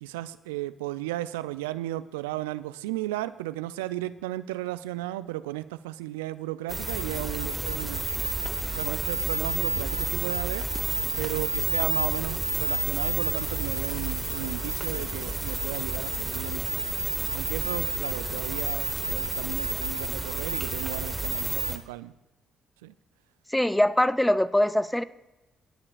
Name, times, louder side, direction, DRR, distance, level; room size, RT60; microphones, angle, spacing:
voice 1, 0.0-8.0 8.7-10.7 11.2-16.9 17.3-22.1 22.8-22.9, right 16 dB, 80° right, 15 dB, 0.4 m, -34 dB
sound 1, 6.7-21.8, right 2 dB, 15° right, 1.2 m, -30 dB
voice 2, 23.5-25.0, left 1 dB, 5° left, 15 dB, 0.6 m, -22 dB
23.5 x 9.6 x 2.5 m, 1.0 s
hypercardioid pair, 45°, 0 cm